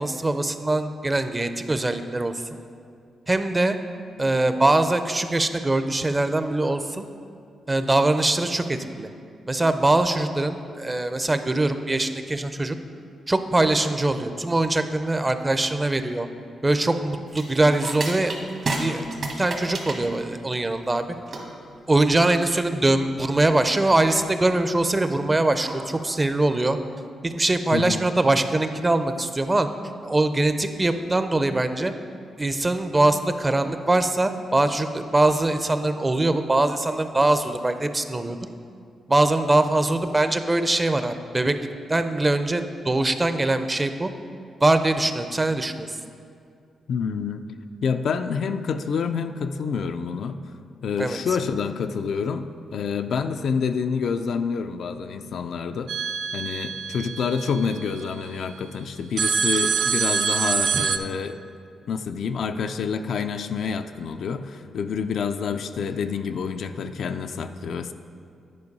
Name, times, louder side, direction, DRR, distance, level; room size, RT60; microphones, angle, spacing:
voice 1, 0.0-2.3 3.3-3.8 4.2-7.0 7.7-9.1 9.5-12.8 13.3-16.3 16.6-18.3 18.8-19.0 19.4-21.0 21.9-26.8 27.2-29.7 30.0-31.9 32.4-38.4 39.1-41.6 41.9-44.1 44.6-45.9 51.0-51.2 60.7-60.8, right 2 dB, 25° right, 9 dB, 0.5 m, -22 dB
sound 1, 17.3-26.3, right 2 dB, 60° right, 1.4 m, -34 dB
voice 2, 46.9-47.4 47.8-50.4 50.8-55.9 56.3-61.4 61.9-67.9, left 6 dB, 70° left, 8 dB, 0.4 m, -28 dB
sound 2, 55.9-58.1 59.2-61.0, right 6 dB, 75° right, 0.4 m, -25 dB
9.7 x 4.6 x 5.3 m, 2.3 s
cardioid pair, 65°, 0 cm